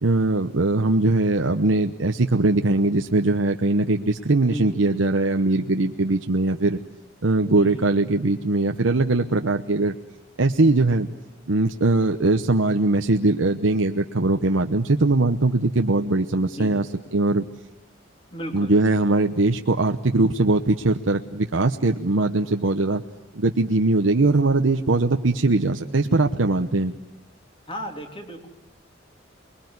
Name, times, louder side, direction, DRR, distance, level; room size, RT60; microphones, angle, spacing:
voice 1, 0.0-6.8 7.2-10.0 10.4-11.1 11.5-17.4 18.5-23.0 23.3-26.9, right 2 dB, 80° right, 5 dB, 0.9 m, -21 dB
voice 2, 4.4-4.8 7.5-7.8 16.4-16.9 18.3-18.7 27.7-28.5, equal, 25° left, 4 dB, 3.2 m, -35 dB
28.5 x 21.5 x 9.5 m, 0.94 s
head